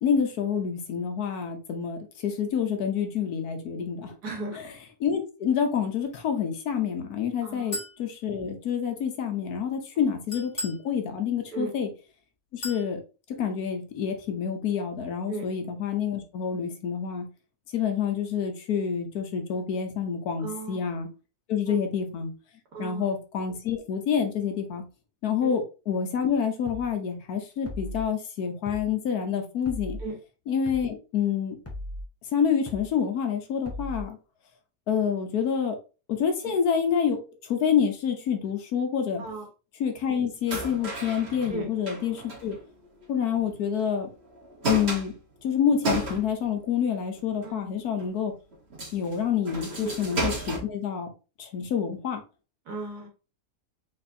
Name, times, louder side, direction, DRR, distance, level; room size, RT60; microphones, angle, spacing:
voice 1, 0.0-4.2 4.5-4.7 5.0-11.9 12.5-13.0 13.4-17.3 17.7-21.1 21.5-22.3 22.8-24.8 25.2-30.0 30.5-31.6 32.3-34.2 34.9-35.8 36.1-39.2 39.8-42.6 43.1-44.1 44.7-45.1 45.4-48.3 48.9-51.1 51.4-52.2, left 7 dB, 75° left, 1.4 m, -27 dB
voice 2, 4.2-4.6 7.4-7.7 10.0-10.1 11.5-11.7 15.3-15.4 20.4-20.8 21.7-21.8 22.7-23.1 25.4-25.6 30.0-30.1 36.4-36.5 39.2-39.5 41.5-41.7 47.4-47.7 49.8-49.9 52.7-53.1, right 3 dB, 80° right, 1.8 m, -35 dB
Chink clink, 7.7-8.0 10.3-10.9 12.6-12.9, left 1 dB, 50° left, 2.1 m, -35 dB
sound 1, 26.7-26.9 27.6-28.0 28.7-28.9 29.6-30.0 30.7-30.9 31.6-32.0 32.7-32.9 33.6-34.0, left 1 dB, 10° left, 0.8 m, -37 dB
sound 2, 40.5-43.5 43.8-43.9 44.3-46.6 47.1-47.5 48.0-48.1 48.5-50.6, right 2 dB, 45° right, 1.7 m, -33 dB
4.4 x 4.1 x 2.6 m
omnidirectional pair, 1.6 m